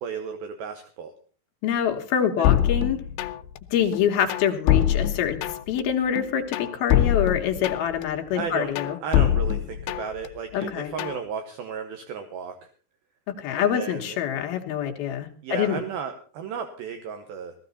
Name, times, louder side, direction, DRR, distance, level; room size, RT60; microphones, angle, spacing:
voice 1, 0.0-1.1 2.4-2.5 8.3-12.7 13.6-14.2 15.4-17.5, right 6 dB, 70° right, 7 dB, 2.6 m, -34 dB
voice 2, 1.6-3.0 3.7-5.4 5.7-9.0 10.5-10.9 13.3-15.8, left 9 dB, 70° left, 4 dB, 2.9 m, -25 dB
sound 1, 2.4-3.6 3.9-5.8 6.2-8.0 8.4-10.3 10.6-11.2, left 11 dB, 85° left, 3.0 m, -24 dB
16.0 x 15.0 x 4.0 m, 0.41 s
omnidirectional pair, 5.0 m